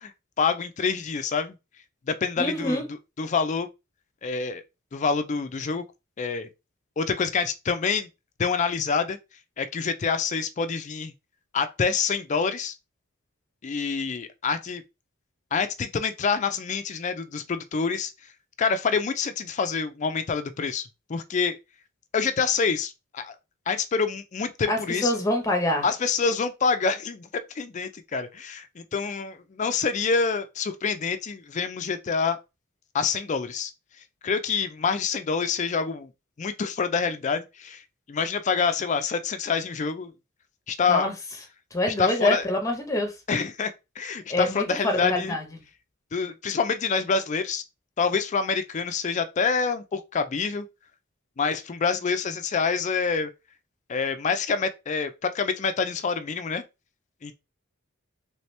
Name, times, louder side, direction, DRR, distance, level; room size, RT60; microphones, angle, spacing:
voice 1, 0.4-1.6 2.1-2.8 3.2-3.7 4.2-4.6 4.9-5.8 6.2-6.5 7.0-8.1 8.4-9.2 9.6-11.1 11.5-12.7 13.6-14.8 15.5-18.1 18.6-21.6 22.1-23.3 23.7-25.2 25.8-27.3 27.6-32.4 32.9-33.7 34.2-36.1 36.4-37.8 38.1-40.1 40.7-41.1 42.0-42.5 43.3-45.4 46.1-47.6 48.0-50.7 51.4-53.3 53.9-56.6 57.2-57.4, left 5 dB, 35° left, 0.4 m, -26 dB
voice 2, 2.4-2.8 24.7-25.9 40.9-41.1 41.7-43.1 44.3-45.4, left 1 dB, 15° left, 0.8 m, -25 dB
3.4 x 2.8 x 3.2 m
head